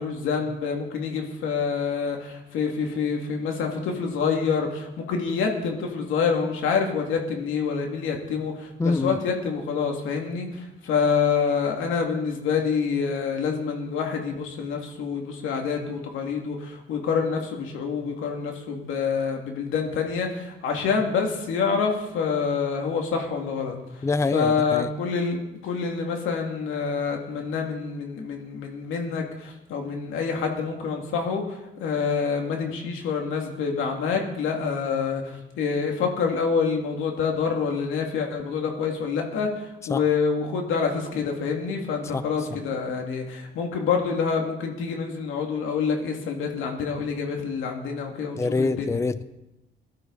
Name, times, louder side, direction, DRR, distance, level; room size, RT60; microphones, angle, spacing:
voice 1, 0.0-23.8 24.3-49.0, left 5 dB, 90° left, 2 dB, 2.4 m, -27 dB
voice 2, 8.8-9.2 24.0-24.9 39.9-40.0 42.1-42.2 48.4-49.2, left 3 dB, 15° left, 14 dB, 0.5 m, -25 dB
17.5 x 12.0 x 4.1 m, 0.98 s
cardioid pair, 90°, 20 cm